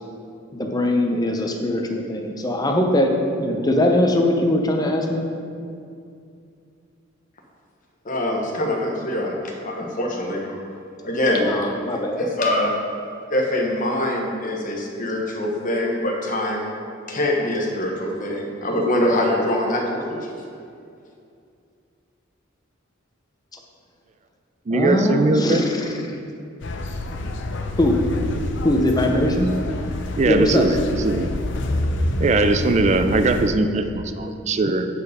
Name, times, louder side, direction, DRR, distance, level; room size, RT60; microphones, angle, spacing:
voice 1, 0.5-5.2 11.4-12.2 24.7-26.0 27.8-28.0 28.6-29.5 30.2-30.9, left 1 dB, 20° left, 2 dB, 0.7 m, -21 dB
voice 2, 8.0-10.6 11.0-11.5 11.9-12.7 13.3-16.7 17.1-20.3, left 1 dB, 40° left, 0 dB, 1.1 m, -24 dB
voice 3, 24.7-25.6 30.2-31.3 32.2-34.9, right 3 dB, 35° right, 8 dB, 0.4 m, -20 dB
sound 1, 26.6-33.5, left 1 dB, 65° left, 0.6 m, -27 dB
8.2 x 4.8 x 4.9 m, 2.4 s
head